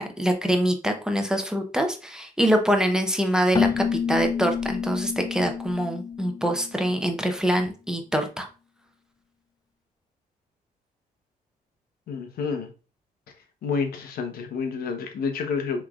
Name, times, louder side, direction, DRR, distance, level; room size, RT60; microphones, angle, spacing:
voice 1, 0.0-8.5, equal, 5° right, 4 dB, 0.7 m, -24 dB
Keyboard (musical), 3.5-7.2, left 6 dB, 25° left, 0.3 m, -29 dB
voice 2, 12.1-12.7 13.6-15.9, left 5 dB, 75° left, 6 dB, 0.9 m, -29 dB
5.7 x 3.2 x 2.4 m, 0.33 s
cardioid pair, 100°, 15 cm